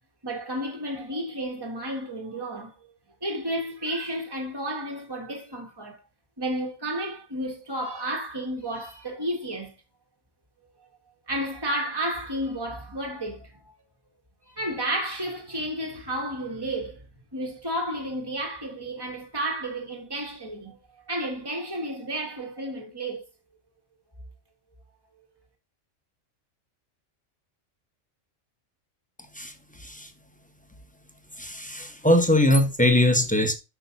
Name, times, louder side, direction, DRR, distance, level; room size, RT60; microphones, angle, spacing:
voice 1, 0.2-2.9 3.2-6.0 6.4-9.7 11.3-13.7 14.5-17.1 17.3-20.8 21.1-23.2, right 1 dB, 20° right, 1.8 m, -32 dB
voice 2, 31.4-33.6, left 1 dB, 5° left, 1.0 m, -21 dB
6.4 x 5.7 x 4.0 m
omnidirectional pair, 1.3 m